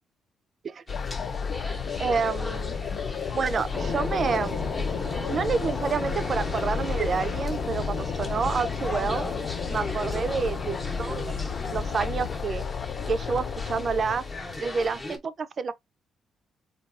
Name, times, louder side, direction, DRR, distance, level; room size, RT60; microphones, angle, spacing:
sound 1, 0.9-15.1, left 6 dB, 55° left, 0.3 m, -33 dB
sound 2, 0.9-15.2, left 1 dB, 20° left, 0.8 m, -39 dB
voice 1, 2.0-2.8 3.3-4.6 5.3-9.2 9.7-11.3 11.7-12.6 13.1-14.2 14.6-15.7, right 5 dB, 45° right, 0.4 m, -28 dB
sound 3, 3.7-12.4, left 3 dB, 40° left, 0.9 m, -35 dB
3.9 x 2.3 x 2.4 m
cardioid pair, 90°, 0 cm